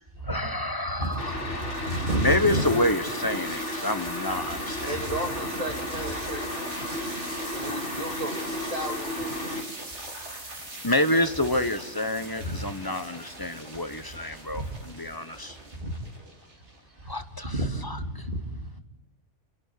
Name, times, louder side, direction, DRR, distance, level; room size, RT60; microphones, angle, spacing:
voice 1, 0.3-1.3 2.2-4.9 10.8-15.6 17.1-17.5 17.8-18.2, left 1 dB, 20° left, 10 dB, 1.0 m, -28 dB
voice 2, 0.9-2.7 12.4-12.6 14.5-14.7 15.8-16.0 17.0-17.1 17.4-18.8, right 1 dB, 50° right, 3 dB, 2.9 m, -30 dB
sound 1, 1.0-17.0, right 1 dB, 75° right, 4.2 m, -40 dB
sound 2, 1.2-9.6, left 1 dB, 80° left, 3.2 m, -34 dB
voice 3, 4.9-7.0 7.5-9.6, right 1 dB, 30° right, 4 dB, 2.3 m, -35 dB
28.0 x 12.0 x 9.4 m, 1.0 s
omnidirectional pair, 1.2 m